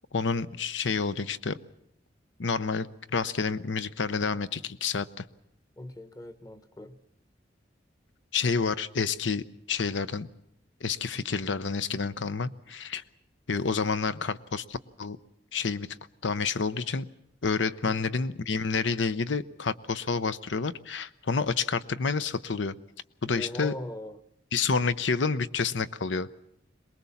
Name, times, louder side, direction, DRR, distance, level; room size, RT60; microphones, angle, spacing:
voice 1, 0.1-1.6 2.4-5.3 8.3-10.3 10.8-13.0 13.5-15.2 15.5-16.0 16.2-17.1 17.4-22.8 23.2-23.7 24.5-26.3, left 5 dB, 85° left, 14 dB, 0.8 m, -29 dB
voice 2, 5.8-7.0 23.3-24.2, left 1 dB, 20° left, 12 dB, 0.9 m, -40 dB
23.0 x 20.0 x 7.1 m, 0.77 s
head